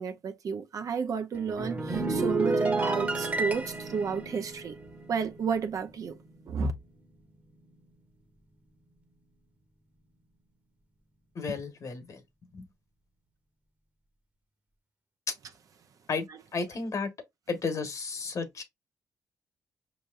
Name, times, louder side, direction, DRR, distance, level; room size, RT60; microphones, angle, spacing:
voice 1, 0.0-4.7 5.1-6.2 6.5-6.7, right 6 dB, 65° right, 0.7 m, -32 dB
sound 1, 1.3-6.0 6.3-6.6, right 3 dB, 25° right, 1.1 m, -31 dB
voice 2, 11.3-12.2 12.5-12.6 16.1-16.2 16.5-17.1 17.5-18.6, left 4 dB, 55° left, 1.4 m, -33 dB
5.3 x 3.0 x 2.5 m
supercardioid pair, 60°, 6 cm